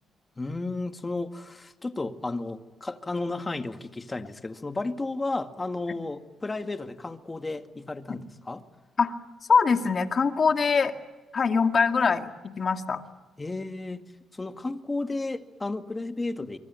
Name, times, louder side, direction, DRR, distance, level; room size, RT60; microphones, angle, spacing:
voice 1, 0.4-8.6 13.4-14.0 14.3-16.6, left 2 dB, 20° left, 8 dB, 2.0 m, -33 dB
voice 2, 9.5-10.9 11.3-12.3 12.6-13.0, left 5 dB, 45° left, 6 dB, 2.2 m, -22 dB
25.5 x 24.0 x 9.6 m, 1.3 s
cardioid pair, 90°, 0 cm